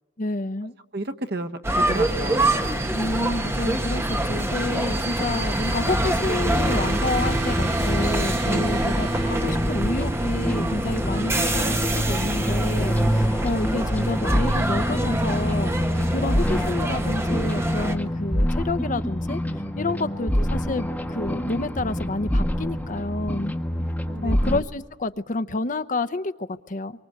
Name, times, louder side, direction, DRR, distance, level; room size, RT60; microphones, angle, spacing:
voice 1, 0.2-0.7 2.9-15.7 16.1-19.4 19.8-23.5 24.2-26.9, left 2 dB, 45° left, 0.8 m, -29 dB
voice 2, 0.9-2.6 8.5-8.6 9.3-9.5 24.1-24.4, right 2 dB, 60° right, 1.3 m, -33 dB
sound 1, 1.6-17.9, right 1 dB, 15° right, 1.4 m, -26 dB
Trumpet, 5.2-10.0, right 5 dB, 80° right, 2.7 m, -38 dB
sound 2, 5.7-24.6, equal, 10° left, 1.5 m, -26 dB
25.5 x 24.5 x 7.9 m
head